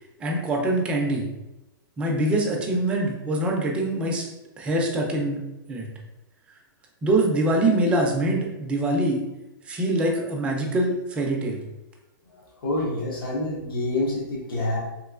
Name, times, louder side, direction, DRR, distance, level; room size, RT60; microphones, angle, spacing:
voice 1, 0.2-1.2 2.0-4.3 4.6-5.9 7.0-9.2 9.7-11.6, right 1 dB, 10° right, 0 dB, 0.3 m, -24 dB
voice 2, 12.6-14.8, left 2 dB, 90° left, -5 dB, 1.1 m, -27 dB
3.1 x 2.9 x 2.4 m, 0.97 s
hypercardioid pair, 165°, 11 cm